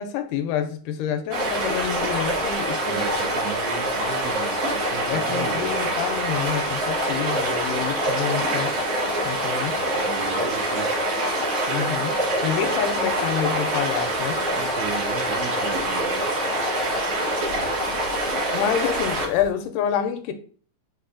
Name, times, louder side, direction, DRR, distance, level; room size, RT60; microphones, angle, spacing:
voice 1, 0.0-3.0 5.1-8.7 9.2-9.8 11.7-12.2 12.4-14.4 18.5-20.3, left 9 dB, 85° left, 9 dB, 2.0 m, -27 dB
sound 1, 1.3-19.5, right 1 dB, 65° right, 3.4 m, -25 dB
voice 2, 2.8-5.7 9.9-10.9 14.5-16.2, right 6 dB, 80° right, 2 dB, 1.7 m, -35 dB
6.6 x 2.5 x 2.5 m, 0.43 s
omnidirectional pair, 3.7 m